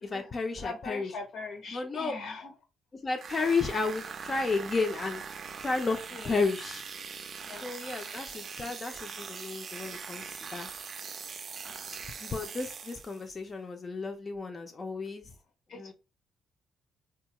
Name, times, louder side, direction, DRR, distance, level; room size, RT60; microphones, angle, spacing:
voice 1, 0.0-1.1 1.7-2.1 2.9-5.2 5.6-6.8 7.6-10.3 10.5-10.7 12.2-15.3 15.7-15.9, left 4 dB, 35° left, 0.5 m, -32 dB
voice 2, 0.6-2.5 6.1-6.4 7.4-7.7 11.6-11.9 15.7-15.9, left 4 dB, 70° left, 0.9 m, -41 dB
sound 1, 3.1-13.3, right 6 dB, 50° right, 0.4 m, -42 dB
4.2 x 2.3 x 2.9 m
cardioid pair, 90°, 0 cm